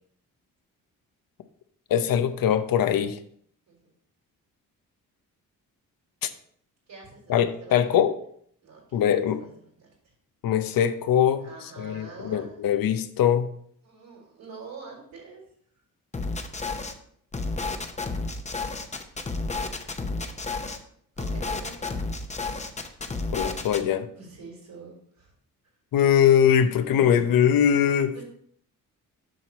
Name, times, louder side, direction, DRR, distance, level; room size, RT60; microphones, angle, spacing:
voice 1, 1.9-3.2 6.2-6.3 7.3-8.1 8.9-9.4 10.4-11.4 11.8-13.5 23.3-24.1 25.9-28.1, left 9 dB, 85° left, 10 dB, 0.8 m, -22 dB
voice 2, 6.9-8.0 8.6-10.1 11.4-12.5 13.8-15.4 21.2-22.0 24.2-25.3 26.6-27.5 28.1-28.2, right 4 dB, 90° right, -6 dB, 3.9 m, -45 dB
sound 1, 16.1-16.9 17.3-20.8 21.2-23.8, left 3 dB, 20° left, 0.8 m, -31 dB
7.7 x 6.0 x 4.2 m, 0.65 s
cardioid pair, 110°, 34 cm